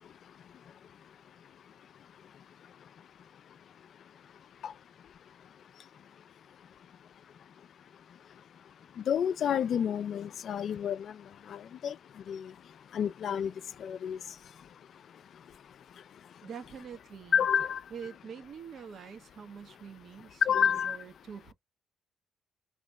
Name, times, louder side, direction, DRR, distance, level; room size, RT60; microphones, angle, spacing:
voice 1, 9.1-11.0 11.5-11.9 12.3-12.5 12.9-13.5 13.8-14.2 17.3-17.8 20.5-21.0, left 8 dB, 60° left, 0.3 m, -29 dB
voice 2, 16.4-17.5 17.9-21.5, right 7 dB, 60° right, 1.1 m, -45 dB
3.2 x 3.1 x 4.1 m
cardioid pair, 90°, 0 cm